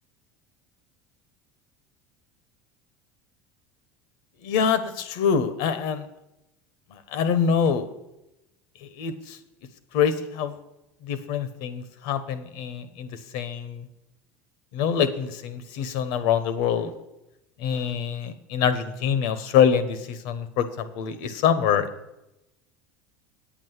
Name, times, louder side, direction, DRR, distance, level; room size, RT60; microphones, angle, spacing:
voice 1, 4.4-6.0 6.9-7.9 8.8-9.4 9.9-10.5 11.0-13.9 14.7-16.9 17.6-21.9, left 7 dB, 70° left, 12 dB, 1.0 m, -25 dB
8.7 x 6.1 x 8.0 m, 0.91 s
hypercardioid pair, 90°, 8 cm